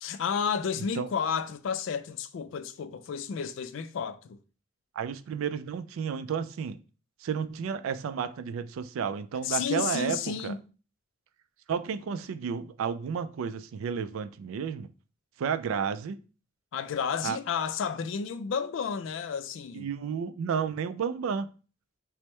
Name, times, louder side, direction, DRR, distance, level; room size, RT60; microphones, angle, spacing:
voice 1, 0.0-4.4 9.4-10.6 16.7-19.9, left 6 dB, 65° left, 0.3 m, -31 dB
voice 2, 0.8-1.1 5.0-6.8 7.2-10.2 10.4-10.5 11.7-14.9 15.4-16.2 17.2-17.4 19.7-21.5, right 6 dB, 80° right, 0.3 m, -32 dB
4.4 x 2.0 x 3.1 m
head